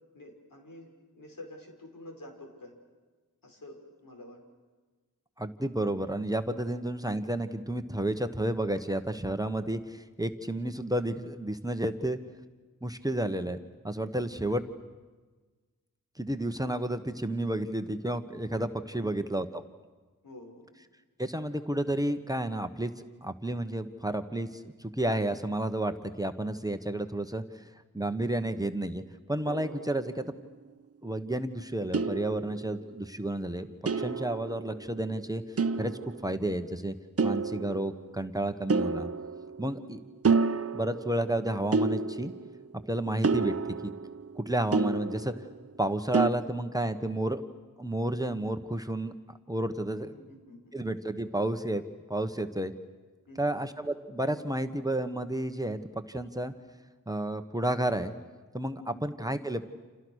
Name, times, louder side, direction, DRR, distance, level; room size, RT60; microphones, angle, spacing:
voice 1, 0.1-0.9 1.1-2.7 3.4-4.4 18.9-19.1 20.2-20.7 39.6-39.8 50.0-50.8 53.3-53.6 58.9-59.0, left 1 dB, 85° left, 1 dB, 5.8 m, -48 dB
voice 2, 5.4-12.2 12.8-13.6 13.8-14.6 16.2-19.5 21.2-22.9 23.2-29.0 29.3-30.3 31.0-33.7 34.0-35.4 35.8-35.9 36.2-36.9 37.2-39.1 39.6-40.0 40.7-42.3 42.9-43.5 43.8-43.9 44.4-45.3 45.8-47.4 47.8-49.1 49.5-50.1 50.7-51.8 52.1-52.7 53.4-55.8 56.1-56.5 57.1-58.1 58.5-59.6, right 1 dB, 10° right, 8 dB, 1.2 m, -31 dB
sound 1, 29.4-30.4 31.9-33.0 33.9-35.1 35.6-36.5 37.2-38.2 38.7-39.9 40.2-41.3 41.7-42.7 43.2-45.6 46.1-46.3, right 4 dB, 45° right, 0.9 m, -30 dB
30.0 x 28.0 x 6.4 m, 1.3 s
wide cardioid pair, 85°, 33 cm